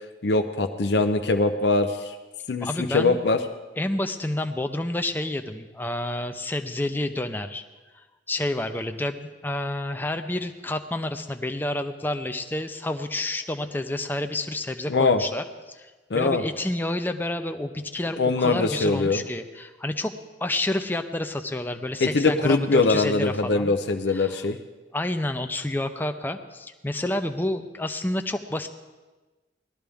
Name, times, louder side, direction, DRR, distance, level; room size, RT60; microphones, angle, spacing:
voice 1, 0.2-2.2 2.5-3.4 14.9-15.2 16.1-16.4 18.2-19.2 22.0-24.6, left 3 dB, 65° left, 5 dB, 0.6 m, -22 dB
voice 2, 2.6-3.2 3.8-7.6 7.9-20.1 20.4-23.7 24.1-24.4 24.9-28.7, left 1 dB, 10° left, 6 dB, 0.5 m, -29 dB
19.0 x 12.5 x 3.5 m, 1.2 s
head